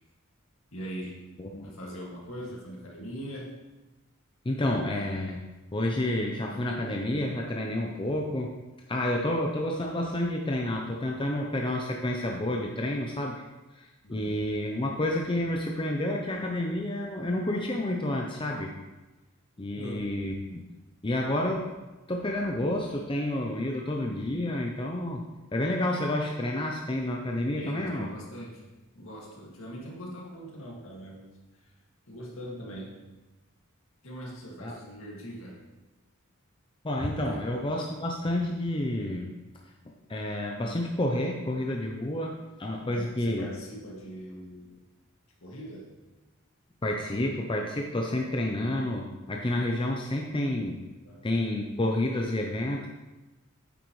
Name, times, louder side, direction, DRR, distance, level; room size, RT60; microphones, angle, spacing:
voice 1, 0.7-1.2 1.6-3.5 14.0-14.4 19.7-20.1 27.5-28.7 28.9-31.3 31.5-31.7 32.1-33.0 34.0-35.6 37.2-37.5 42.8-44.8 45.4-45.9 51.0-51.2, equal, 70° left, -3 dB, 2.2 m, -41 dB
voice 2, 4.4-5.4 5.7-8.5 8.9-13.4 13.7-18.7 19.6-20.6 21.0-21.7 22.1-25.2 25.5-28.1 34.6-34.8 36.8-39.3 39.8-43.5 46.8-50.8 51.2-52.9, left 1 dB, 25° left, 1 dB, 0.6 m, -29 dB
9.1 x 8.1 x 3.2 m, 1.1 s
head